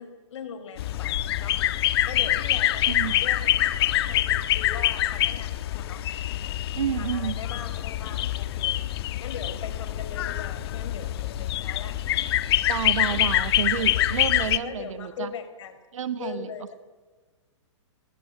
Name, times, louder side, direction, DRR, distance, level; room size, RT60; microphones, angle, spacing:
voice 1, 0.0-1.6 2.0-6.0 6.9-8.8 9.2-12.0 13.0-13.3 13.8-14.1 14.6-15.8 16.2-16.7, left 7 dB, 65° left, 8 dB, 4.9 m, -40 dB
sound 1, 0.8-14.6, left 13 dB, 50° left, 1.4 m, -25 dB
voice 2, 6.7-7.3 12.7-15.3 15.9-16.7, right 9 dB, 85° right, 12 dB, 1.3 m, -30 dB
22.5 x 19.0 x 9.5 m, 1.3 s
hypercardioid pair, 150°, 16 cm